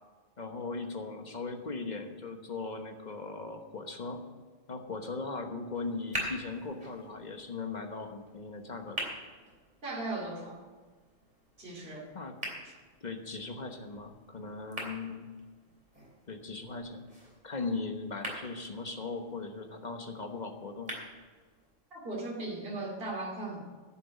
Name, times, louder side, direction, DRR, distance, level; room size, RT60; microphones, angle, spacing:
voice 1, 0.4-4.3 4.7-9.0 12.1-12.4 13.0-15.3 16.3-17.1 17.4-21.0, left 3 dB, 35° left, 5 dB, 1.2 m, -38 dB
sound 1, 5.7-21.7, equal, 35° right, 3.4 m, -45 dB
voice 2, 9.8-10.6 11.6-12.1 12.6-12.7 21.9-23.6, right 2 dB, 50° right, -2 dB, 2.6 m, -37 dB
11.0 x 7.3 x 9.5 m, 1.4 s
omnidirectional pair, 1.3 m